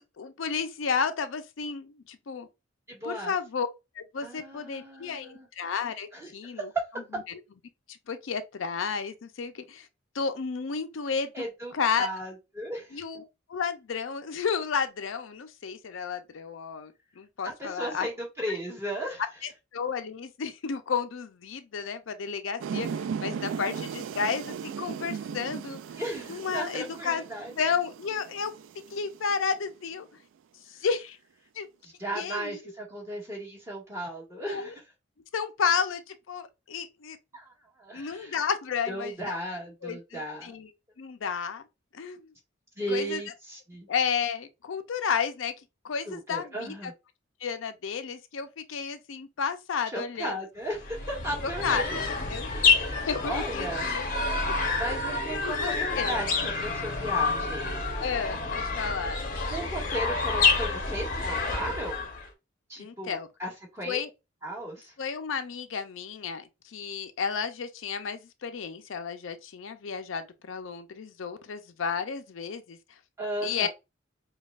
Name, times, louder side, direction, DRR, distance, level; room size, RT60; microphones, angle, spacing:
voice 1, 0.0-2.5 3.0-3.7 4.0-6.7 7.9-9.9 10.1-11.5 11.7-12.1 12.9-13.2 13.5-18.1 18.5-18.6 19.4-25.8 26.3-27.2 27.6-28.5 28.9-30.1 30.7-31.2 31.6-31.7 32.1-32.6 34.3-34.7 35.3-37.2 37.9-40.7 41.0-41.6 41.9-42.3 42.9-43.2 43.9-45.5 45.8-46.9 47.4-50.4 51.4-52.5 53.1-54.5 55.4-56.2 58.0-59.2 62.8-63.3 63.8-64.1 65.0-73.0 73.4-73.7, left 6 dB, 85° left, 0.5 m, -32 dB
voice 2, 2.9-3.3 4.2-5.5 6.1-6.3 6.5-6.6 11.3-13.0 17.6-19.2 26.0-27.5 31.8-34.8 37.3-38.3 38.9-40.6 42.8-43.9 46.1-46.9 49.9-52.0 52.4-53.9 54.8-57.7 59.5-62.1 62.7-64.0 64.4-64.9 73.2-73.7, right 1 dB, 15° right, 1.6 m, -36 dB
sound 1, 22.6-29.6, right 7 dB, 80° right, 0.3 m, -37 dB
sound 2, 50.7-62.3, left 4 dB, 45° left, 0.7 m, -28 dB
5.2 x 2.3 x 2.3 m
head